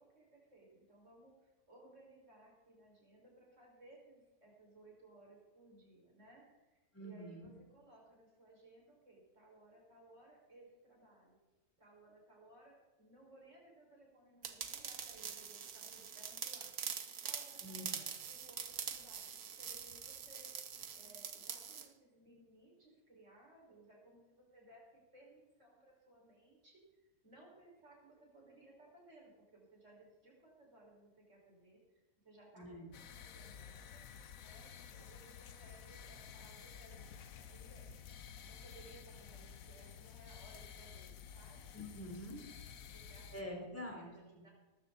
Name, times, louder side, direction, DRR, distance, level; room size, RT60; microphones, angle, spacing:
voice 1, 0.0-11.4 11.8-16.7 17.2-20.5 21.0-31.8 32.2-34.0 34.4-37.9 38.4-41.7 42.8-43.4 43.7-44.5, right 2 dB, 55° right, -3 dB, 5.7 m, -62 dB
voice 2, 6.9-7.5 17.6-18.0 32.5-32.9 41.7-42.4 43.3-44.4, equal, 10° left, 0 dB, 3.5 m, -47 dB
sound 1, 14.4-21.9, right 7 dB, 85° right, 1.6 m, -44 dB
sound 2, 32.9-43.4, left 7 dB, 70° left, 1.3 m, -52 dB
19.0 x 14.0 x 4.1 m, 1.1 s
omnidirectional pair, 1.6 m